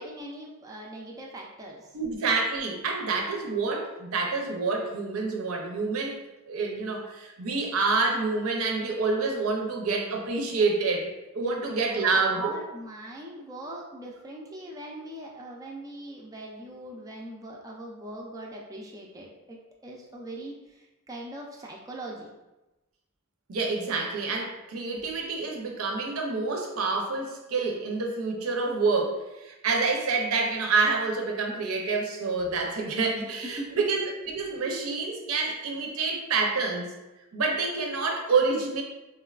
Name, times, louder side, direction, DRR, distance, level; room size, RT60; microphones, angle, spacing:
voice 1, 0.0-1.9 11.4-19.6 19.8-20.5 21.1-22.3 33.6-33.8, right 1 dB, 15° right, -2 dB, 0.4 m, -41 dB
voice 2, 1.9-6.2 6.4-11.1 11.3-12.6 23.5-36.9 37.3-38.8, right 4 dB, 75° right, 1 dB, 0.5 m, -27 dB
3.9 x 2.2 x 2.3 m, 1.0 s
head